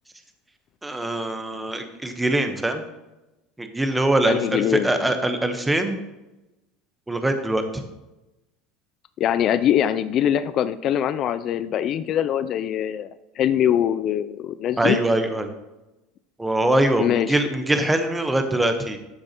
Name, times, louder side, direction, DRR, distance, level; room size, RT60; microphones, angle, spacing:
voice 1, 0.8-2.8 3.6-6.0 7.1-7.6 14.8-15.5 16.4-19.0, right 1 dB, 10° right, 7 dB, 1.0 m, -23 dB
voice 2, 4.3-5.1 9.2-13.1 13.4-15.0 17.0-17.4, left 10 dB, 50° left, 13 dB, 0.3 m, -23 dB
12.0 x 6.3 x 2.9 m, 1.0 s
supercardioid pair, 100°, 0 cm